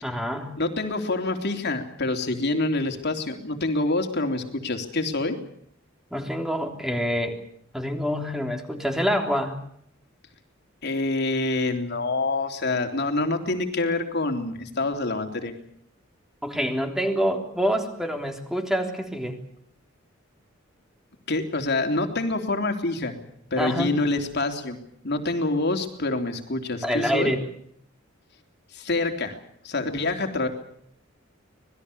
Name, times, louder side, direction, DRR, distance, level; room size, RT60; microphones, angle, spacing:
voice 1, 0.0-0.6 6.1-7.4 7.7-9.6 16.4-19.4 23.6-23.9 26.8-27.4, equal, ahead, 4 dB, 3.4 m, -26 dB
voice 2, 0.6-5.4 10.8-15.5 21.3-23.2 23.5-24.8 25.0-27.3 28.7-29.4 29.6-30.5, left 2 dB, 60° left, 5 dB, 3.5 m, -26 dB
26.5 x 20.5 x 7.0 m, 0.68 s
head